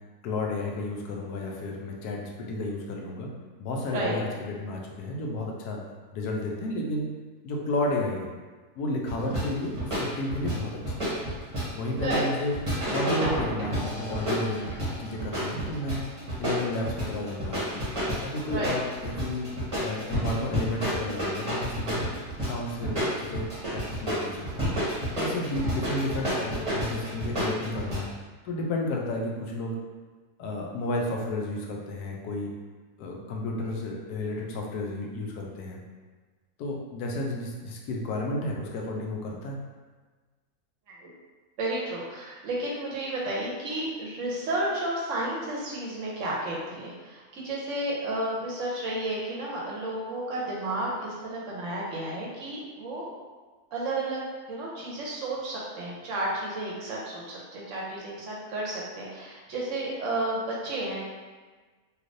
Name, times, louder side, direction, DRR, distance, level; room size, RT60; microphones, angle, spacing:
voice 1, 0.2-3.3 3.6-5.8 6.1-7.1 7.4-8.3 8.7-11.1 11.7-12.6 12.9-16.0 16.4-17.6 18.2-19.5 19.8-22.0 22.4-24.7 25.1-28.1 28.4-29.8 30.4-32.5 33.0-35.8 36.6-39.6, left 2 dB, 90° left, 0 dB, 1.1 m, -32 dB
sound 1, 9.1-28.0, equal, 25° right, 0.8 m, -30 dB
voice 2, 41.6-53.1 53.7-54.2 54.5-61.0, right 1 dB, 65° right, -4 dB, 0.9 m, -32 dB
3.2 x 2.8 x 2.5 m, 1.4 s
omnidirectional pair, 1.6 m